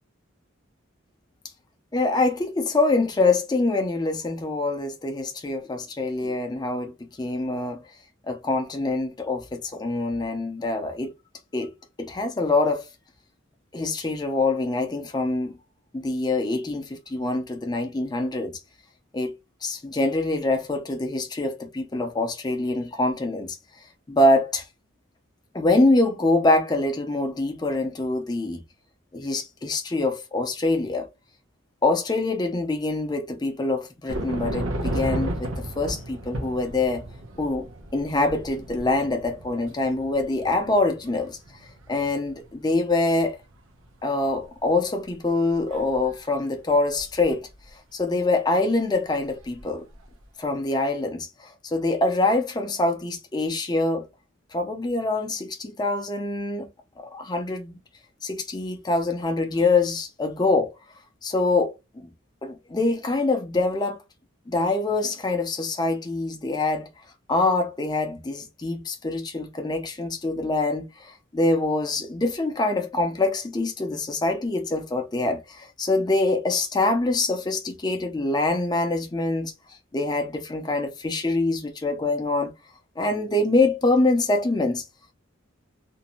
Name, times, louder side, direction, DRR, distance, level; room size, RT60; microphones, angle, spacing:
voice 1, 1.9-7.8 8.3-11.1 11.5-11.7 12.0-12.8 13.7-15.6 15.9-18.6 19.1-19.3 19.6-23.6 24.1-24.6 25.5-28.6 29.1-31.1 31.8-37.0 37.4-41.4 41.9-43.4 44.0-47.5 47.9-49.8 50.4-54.0 54.5-56.7 57.0-57.7 58.2-60.7 61.2-62.1 62.4-64.0 64.5-66.9 67.3-82.5 83.0-84.8, left 2 dB, 20° left, 0.4 m, -25 dB
sound 1, 34.1-42.8 43.2-43.8 44.3-44.4 45.5-46.2 46.9-47.3 49.4-49.6 49.9-50.1, right 1 dB, 85° right, 0.6 m, -34 dB
2.5 x 2.1 x 2.8 m
head